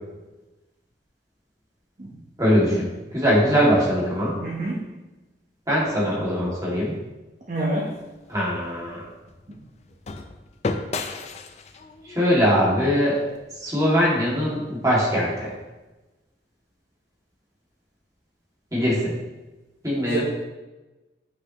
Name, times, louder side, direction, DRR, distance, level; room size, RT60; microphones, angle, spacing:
voice 1, 2.4-4.4 5.7-7.0 8.3-9.0 12.0-13.2 13.6-15.5 18.7-19.1 19.8-20.2, equal, 20° right, -6 dB, 2.2 m, -21 dB
voice 2, 4.4-4.8 7.5-7.9 20.1-20.2, right 2 dB, 40° right, -4 dB, 1.0 m, -27 dB
sound 1, 7.8-14.0, left 3 dB, 35° left, 0.4 m, -35 dB
8.0 x 5.7 x 3.0 m, 1.1 s
head